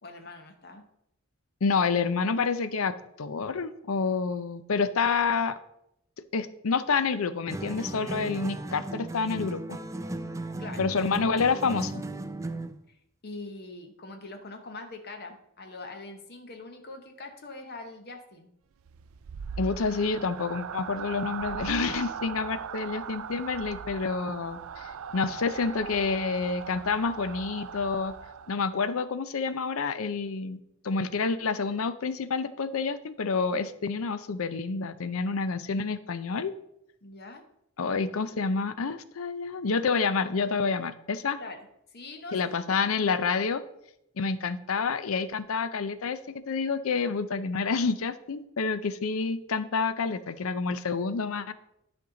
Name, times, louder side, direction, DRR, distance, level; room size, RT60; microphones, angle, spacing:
voice 1, 0.0-0.8 10.6-10.8 12.9-13.0 13.2-18.5 37.0-37.4 41.4-41.7 41.9-42.8, left 2 dB, 50° left, 5 dB, 0.9 m, -43 dB
voice 2, 1.6-5.6 6.3-9.8 10.8-12.0 19.6-28.1 28.5-30.6 30.8-36.5 37.8-41.4 42.3-43.6 44.2-46.2 46.5-51.5, left 4 dB, 80° left, 14 dB, 0.6 m, -28 dB
sound 1, 7.5-12.8, right 2 dB, 15° right, 0.4 m, -36 dB
sound 2, 18.8-28.8, right 7 dB, 75° right, 0.4 m, -39 dB
11.5 x 5.3 x 3.8 m, 0.79 s
head